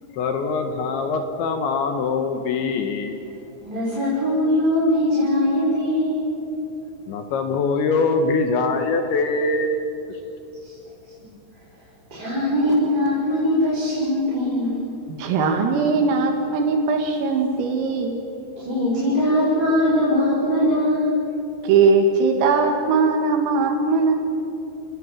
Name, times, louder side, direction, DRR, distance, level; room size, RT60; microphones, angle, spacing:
voice 1, 0.1-3.2 7.1-9.8, left 3 dB, 70° left, 5 dB, 3.3 m, -23 dB
voice 2, 3.6-6.3 10.6-10.7 12.1-14.8 18.5-21.1, left 1 dB, 20° right, -9 dB, 6.6 m, -21 dB
voice 3, 15.1-18.2 19.0-19.1 21.6-24.1, right 4 dB, 80° right, 3 dB, 4.4 m, -20 dB
29.0 x 20.0 x 7.5 m, 2.8 s
omnidirectional pair, 6.0 m